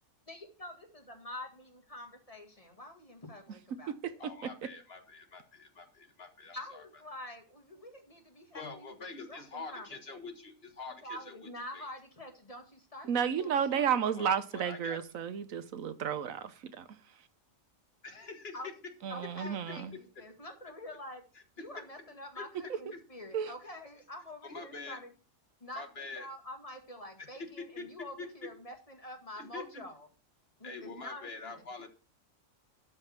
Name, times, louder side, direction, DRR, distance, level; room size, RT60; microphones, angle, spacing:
voice 1, 0.3-4.2 6.5-9.0 9.3-10.2 11.0-14.4 18.5-18.7 19.1-21.2 21.6-25.1 25.6-30.1 30.6-31.6, left 1 dB, 25° left, 2.1 m, -47 dB
voice 2, 4.2-6.8 8.5-11.3 11.7-11.8 13.7-13.9 14.2-15.0 18.0-18.6 19.9-20.0 21.6-21.8 22.3-23.0 24.4-25.0 25.7-26.3 27.4-27.9 28.2-28.3 29.4-29.8 30.6-31.9, left 4 dB, 50° left, 1.7 m, -45 dB
voice 3, 13.1-16.9 19.0-19.9 23.3-23.5, right 8 dB, 75° right, 1.3 m, -32 dB
12.5 x 5.4 x 6.0 m
omnidirectional pair, 1.4 m